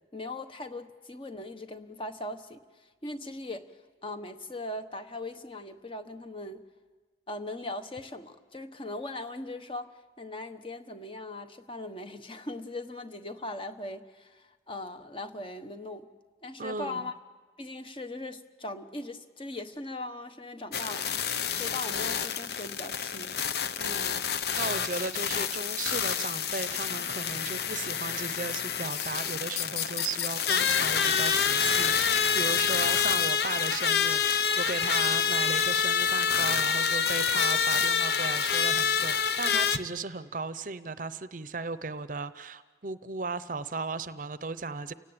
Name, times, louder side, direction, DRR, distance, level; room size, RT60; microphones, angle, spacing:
voice 1, 0.1-2.6 3.0-3.6 4.0-6.6 7.3-16.1 16.4-17.1 17.6-21.2 21.5-23.4, left 2 dB, 30° left, 8 dB, 1.2 m, -39 dB
voice 2, 16.6-17.1 23.8-44.9, right 4 dB, 45° right, 13 dB, 0.7 m, -36 dB
sound 1, 20.7-39.8, left 7 dB, 60° left, 0.9 m, -27 dB
30.0 x 18.0 x 8.8 m, 1.4 s
head